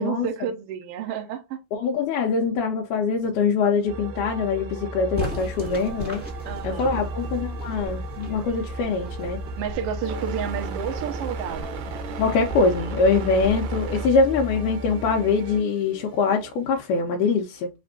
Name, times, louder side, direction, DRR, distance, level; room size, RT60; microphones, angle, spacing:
voice 1, 0.0-1.6 6.4-7.0 9.6-11.9, right 8 dB, 70° right, 1.4 m, -31 dB
voice 2, 1.7-6.2 6.6-9.4 12.2-17.7, left 4 dB, 75° left, 2.0 m, -23 dB
sound 1, 3.9-15.6, right 2 dB, 85° right, 2.4 m, -34 dB
sound 2, 5.1-15.0, equal, 5° left, 1.5 m, -38 dB
sound 3, 10.0-16.9, equal, 40° right, 2.2 m, -43 dB
5.0 x 3.3 x 2.6 m
omnidirectional pair, 4.0 m